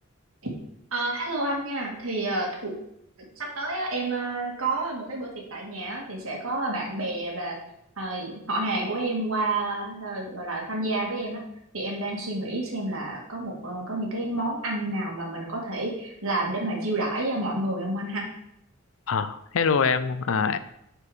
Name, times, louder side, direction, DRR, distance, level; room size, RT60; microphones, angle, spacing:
voice 1, 0.9-2.7 3.4-7.6 8.0-11.4 11.7-18.3, right 2 dB, 70° right, -1 dB, 2.2 m, -29 dB
voice 2, 19.1-20.6, left 5 dB, 65° left, 12 dB, 0.5 m, -24 dB
8.4 x 4.7 x 5.0 m, 0.77 s
head